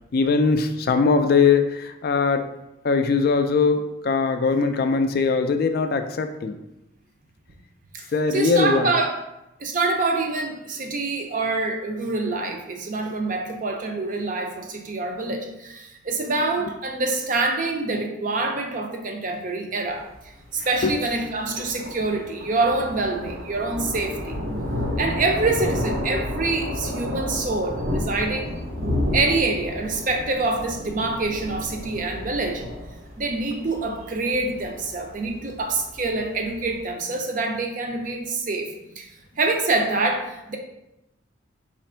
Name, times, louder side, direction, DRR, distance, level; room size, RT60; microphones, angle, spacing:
voice 1, 0.1-2.4 2.8-6.6 8.1-8.9 20.6-21.0, left 4 dB, 50° left, 7 dB, 0.3 m, -21 dB
voice 2, 8.3-9.1 9.6-20.0 20.5-24.4 25.0-28.6 29.1-32.6 33.2-39.1 39.4-40.6, right 3 dB, 40° right, 3 dB, 0.5 m, -26 dB
Thunder, 19.9-36.8, left 1 dB, 90° right, 0.9 m, -31 dB
4.1 x 2.5 x 4.3 m, 0.90 s
head